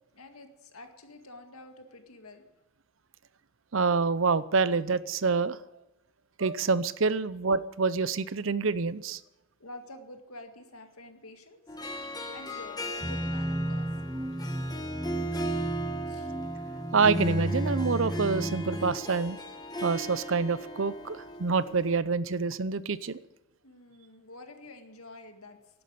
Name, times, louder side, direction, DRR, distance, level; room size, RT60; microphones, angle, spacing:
voice 1, 0.1-2.4 9.6-11.6 12.3-13.9 14.4-14.6 16.1-16.3 23.6-25.6, left 2 dB, 90° left, 6 dB, 2.0 m, -48 dB
voice 2, 3.7-5.6 6.4-9.2 16.9-19.4 19.8-23.2, right 4 dB, 65° right, 16 dB, 0.7 m, -27 dB
Harp, 11.7-22.0, right 1 dB, 20° left, 1.5 m, -38 dB
sound 1, 13.0-19.0, right 1 dB, 10° right, 0.6 m, -32 dB
11.5 x 11.0 x 9.5 m, 0.93 s
head